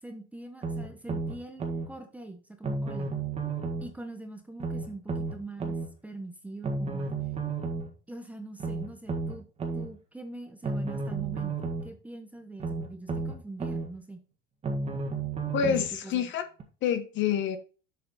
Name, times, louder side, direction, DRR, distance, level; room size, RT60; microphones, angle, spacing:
voice 1, 0.0-3.1 3.8-5.8 6.0-7.1 8.1-9.4 9.7-14.2 15.6-16.3, right 2 dB, 5° right, 0.9 m, -43 dB
sound 1, 0.6-1.9 2.6-3.9 4.6-5.9 6.6-7.9 8.6-9.9 10.6-11.9 12.6-13.9 14.6-15.9 16.6-16.7, right 4 dB, 20° right, 1.8 m, -32 dB
voice 2, 15.5-16.4 16.8-17.6, left 8 dB, 40° left, 1.0 m, -27 dB
7.3 x 5.8 x 4.0 m
supercardioid pair, 140°, 30 cm